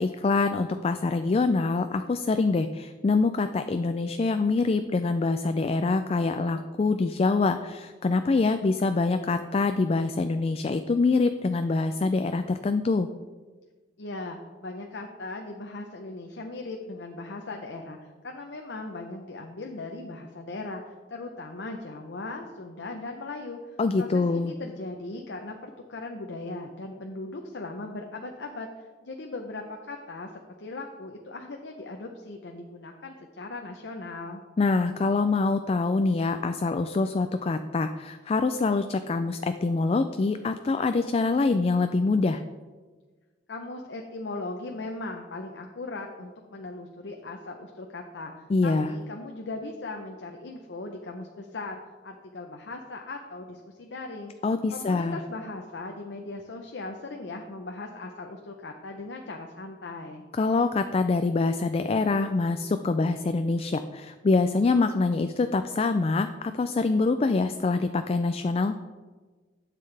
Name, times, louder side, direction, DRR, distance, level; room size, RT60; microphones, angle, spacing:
voice 1, 0.0-13.1 23.8-24.5 34.6-42.4 48.5-48.9 54.4-55.2 60.4-68.7, left 3 dB, 35° left, 9 dB, 0.3 m, -25 dB
voice 2, 14.0-30.3 30.6-34.4 43.5-54.3 54.7-60.2, left 2 dB, 85° left, 2 dB, 0.7 m, -38 dB
11.5 x 7.6 x 3.3 m, 1.3 s
head